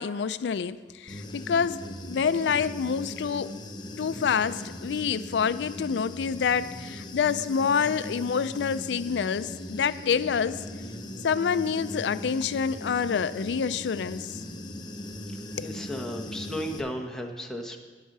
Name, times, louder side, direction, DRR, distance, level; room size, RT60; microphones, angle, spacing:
voice 1, 0.0-3.5 4.0-10.6 11.2-14.3 15.6-15.7, left 6 dB, 70° left, 14 dB, 0.4 m, -27 dB
Human voice / Buzz, 1.1-16.8, left 1 dB, 25° left, 0.9 m, -39 dB
voice 2, 15.6-17.8, equal, 5° left, 2 dB, 1.1 m, -34 dB
10.5 x 7.9 x 6.6 m, 1.4 s
head